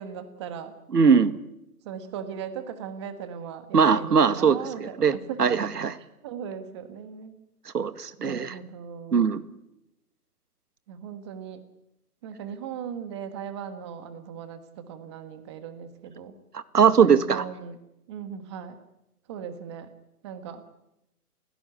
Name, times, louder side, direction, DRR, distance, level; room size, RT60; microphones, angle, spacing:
voice 1, 0.0-0.8 1.8-5.6 6.0-7.4 8.2-9.3 10.9-11.6 12.2-16.4 17.0-17.8 18.1-18.8 19.3-19.9 20.2-20.6, right 7 dB, 20° right, 10 dB, 1.4 m, -38 dB
voice 2, 0.9-1.3 3.7-5.9 7.7-8.6 9.1-9.4 16.5-17.4, right 6 dB, 85° right, 13 dB, 2.0 m, -21 dB
28.5 x 17.0 x 10.0 m, 0.88 s
hypercardioid pair, 165°, 46 cm